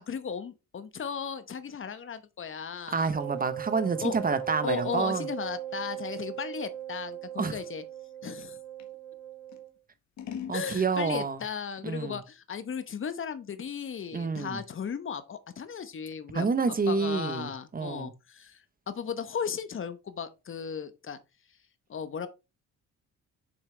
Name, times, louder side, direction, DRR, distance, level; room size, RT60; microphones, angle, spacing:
voice 1, 0.0-3.1 4.0-4.2 4.6-7.8 8.2-8.6 10.5-16.5 16.9-18.6 18.9-21.2 21.9-22.3, left 6 dB, 45° left, 1.0 m, -36 dB
Scissors, 2.8-8.9 9.5-10.6, left 8 dB, 70° left, 1.5 m, -46 dB
voice 2, 2.9-5.3 7.4-7.6 10.5-11.4 11.8-12.2 14.1-14.6 16.3-18.1, right 4 dB, 30° right, 0.9 m, -28 dB
Wind instrument woodwind instrument, 3.1-9.7, right 12 dB, 60° right, 3.8 m, -39 dB
6.9 x 6.7 x 3.3 m
cardioid pair, 90°, 30 cm